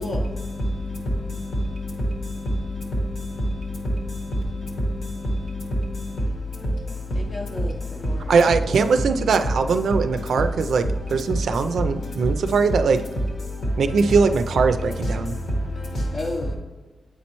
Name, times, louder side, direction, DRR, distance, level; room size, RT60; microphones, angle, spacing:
voice 1, 0.0-6.2 10.2-10.4 11.2-11.3 12.2-12.3 13.0-13.2 13.9-14.4 14.8-15.3 15.8-16.2, equal, 80° left, 1.3 m, -28 dB
voice 2, 7.1-8.6 16.1-16.5, left 2 dB, 45° left, 0.6 m, -33 dB
voice 3, 8.3-10.8 11.1-13.0 13.8-15.3, right 5 dB, 80° right, 0.4 m, -20 dB
8.1 x 4.2 x 2.9 m
wide cardioid pair, 125°, 0 cm